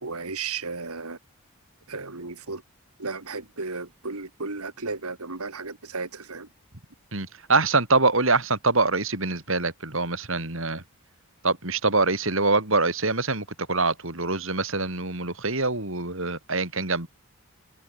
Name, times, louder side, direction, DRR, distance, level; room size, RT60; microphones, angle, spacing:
voice 1, 0.0-1.2 1.9-2.6 3.0-6.5, right 4 dB, 90° right, 2.5 m, -34 dB
voice 2, 7.1-10.8 11.4-17.1, right 3 dB, 65° right, 4.2 m, -24 dB
head